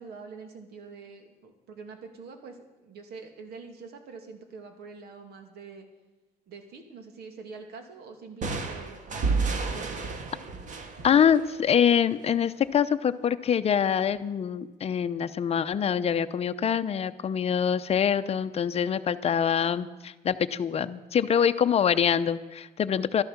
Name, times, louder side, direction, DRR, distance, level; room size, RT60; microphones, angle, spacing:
voice 1, 0.0-5.9 6.5-9.0 9.7-10.3, right 4 dB, 70° right, 6 dB, 2.4 m, -45 dB
sound 1, 8.4-12.1, right 4 dB, 50° right, 1.6 m, -31 dB
voice 2, 11.0-23.2, left 8 dB, 35° left, 11 dB, 0.7 m, -25 dB
12.5 x 11.5 x 7.3 m, 1.2 s
cardioid pair, 110°, 17 cm